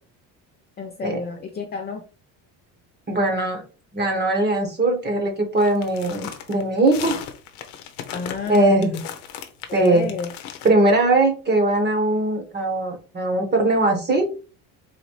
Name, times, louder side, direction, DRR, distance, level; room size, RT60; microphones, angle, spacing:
voice 1, 0.8-2.0 8.1-8.8 9.7-10.3, left 5 dB, 25° left, 0.6 m, -30 dB
voice 2, 3.1-3.6 3.9-7.2 8.5-9.0 9.7-10.1 10.6-14.3, right 2 dB, 25° right, 1.3 m, -20 dB
sound 1, 5.6-10.7, left 8 dB, 85° left, 0.8 m, -36 dB
4.1 x 2.6 x 3.1 m
supercardioid pair, 90°, 39 cm